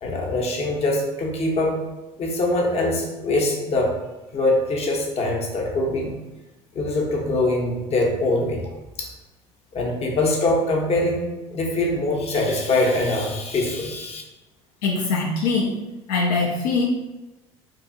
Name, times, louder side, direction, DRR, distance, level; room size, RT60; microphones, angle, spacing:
voice 1, 0.0-1.7 2.2-3.9 4.3-6.1 6.7-8.6 9.0-9.1 9.7-11.2 11.5-14.2, left 2 dB, 45° left, 0 dB, 0.7 m, -23 dB
voice 2, 14.8-15.8 16.1-16.9, left 4 dB, 80° left, -1 dB, 0.4 m, -22 dB
2.7 x 2.4 x 2.6 m, 1.0 s
hypercardioid pair, 75°, 15 cm